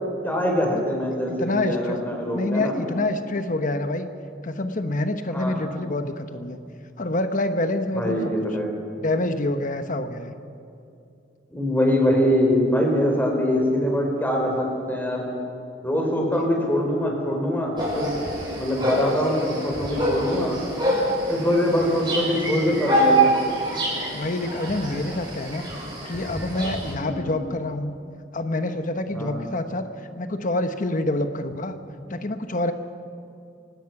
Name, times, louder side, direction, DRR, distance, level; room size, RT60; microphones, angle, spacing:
voice 1, 0.2-2.7 5.3-5.6 7.9-8.7 11.5-15.3 15.8-18.2 18.6-20.6 21.3-23.3 27.0-27.3 29.1-29.4, equal, 10° left, 0 dB, 4.6 m, -23 dB
voice 2, 1.3-2.0 2.3-4.1 4.4-6.6 7.0-8.3 8.9-10.3 16.3-16.5 24.1-25.6 26.1-27.9 28.3-29.9 30.2-31.8 32.1-32.7, left 2 dB, 45° left, 8 dB, 1.1 m, -27 dB
sound 1, 17.8-26.9, right 1 dB, 25° right, 7.1 m, -26 dB
28.5 x 17.5 x 6.1 m, 2.6 s
head